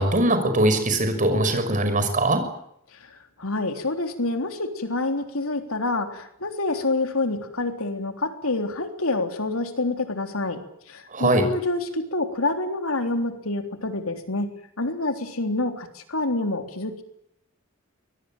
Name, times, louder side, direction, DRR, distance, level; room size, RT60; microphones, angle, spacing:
voice 1, 0.0-2.4 11.1-11.5, right 1 dB, 40° right, 7 dB, 6.1 m, -21 dB
voice 2, 2.9-10.6 10.9-14.5 14.8-17.0, left 2 dB, 85° left, 6 dB, 3.6 m, -27 dB
24.0 x 21.5 x 9.1 m, 0.75 s
head